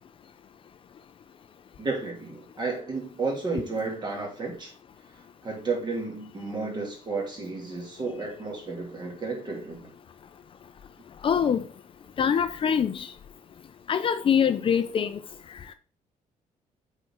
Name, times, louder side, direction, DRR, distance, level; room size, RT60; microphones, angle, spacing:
voice 1, 1.8-4.7 5.4-9.9, right 3 dB, 35° right, 2.8 m, -32 dB
voice 2, 11.2-11.6 12.2-13.1 13.9-15.2, left 7 dB, 40° left, 0.5 m, -24 dB
7.7 x 4.3 x 4.5 m
cardioid pair, 135°, 13 cm